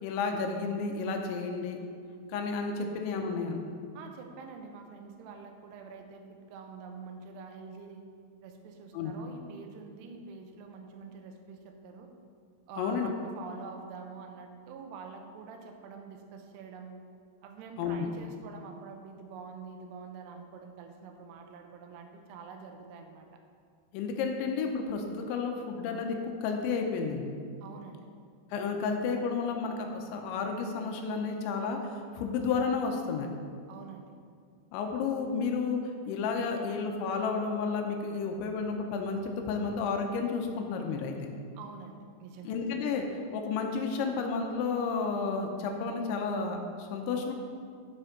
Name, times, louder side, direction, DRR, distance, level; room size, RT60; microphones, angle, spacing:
voice 1, 0.0-1.8 2.3-3.6 8.9-9.1 12.8-13.1 17.8-18.1 23.9-27.3 28.5-33.3 34.7-35.8 36.1-41.2 42.4-43.1 43.3-47.3, left 5 dB, 90° left, 3 dB, 3.1 m, -31 dB
voice 2, 3.9-8.0 8.4-12.1 12.7-16.9 17.4-23.3 27.6-28.1 33.7-34.1 41.5-42.5, right 5 dB, 80° right, 4 dB, 2.6 m, -46 dB
12.5 x 4.4 x 5.1 m, 2.2 s
omnidirectional pair, 5.2 m